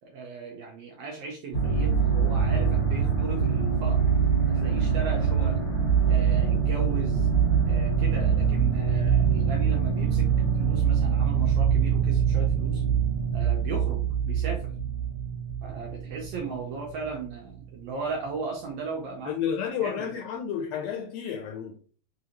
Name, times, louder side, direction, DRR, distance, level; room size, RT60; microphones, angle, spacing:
voice 1, 0.0-4.0 4.5-5.6 6.0-7.3 7.6-12.8 13.3-14.7 15.6-19.3 19.8-20.0, right 4 dB, 75° right, 1.5 m, -37 dB
sound 1, 1.5-17.2 17.7-17.8, right 7 dB, 35° left, 0.8 m, -24 dB
voice 2, 19.2-21.8, left 8 dB, 80° left, 1.6 m, -31 dB
4.9 x 2.6 x 2.9 m
omnidirectional pair, 3.4 m